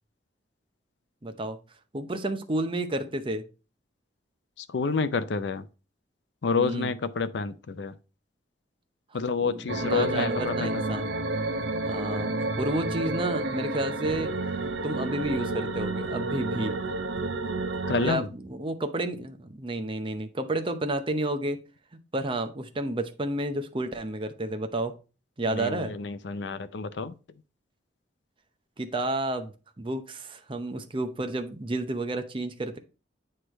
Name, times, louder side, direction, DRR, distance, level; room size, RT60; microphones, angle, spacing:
voice 1, 1.2-1.6 1.9-3.4 6.6-6.9 9.4-11.2 11.9-14.3 14.8-16.8 18.0-21.6 22.1-24.9 25.4-25.9 28.8-32.8, right 1 dB, 30° right, 0.7 m, -31 dB
voice 2, 4.6-5.6 6.4-7.9 9.1-10.8 17.9-18.3 25.5-27.2, left 4 dB, 70° left, 0.5 m, -29 dB
sound 1, 9.7-18.1, right 2 dB, 90° right, 0.7 m, -30 dB
8.1 x 3.2 x 4.3 m
head